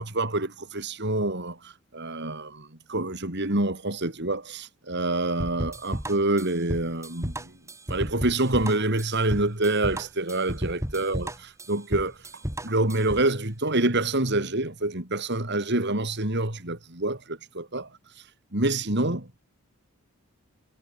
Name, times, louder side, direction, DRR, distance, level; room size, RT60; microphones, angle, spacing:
voice 1, 0.0-7.5 7.9-12.2 12.6-17.9 18.5-19.4, right 2 dB, 50° right, 3.6 m, -27 dB
sound 1, 5.4-13.3, equal, 15° right, 3.9 m, -33 dB
head